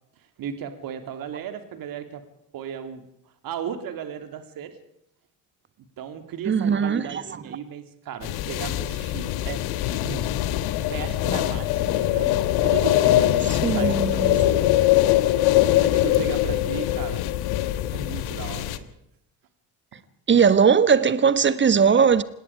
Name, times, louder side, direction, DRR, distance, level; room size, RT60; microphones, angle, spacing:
voice 1, 0.4-2.2 2.5-3.0 3.4-4.8 5.8-9.6 10.0-10.5 10.9-14.8 15.8-17.3 17.9-18.9, right 8 dB, 45° right, 3.2 m, -36 dB
voice 2, 6.5-7.2 13.5-14.4 20.3-22.2, right 6 dB, 25° right, 1.4 m, -19 dB
sound 1, 8.2-18.8, left 14 dB, 55° left, 1.5 m, -22 dB
27.0 x 19.5 x 5.0 m
figure-of-eight pair, 55°, 46 cm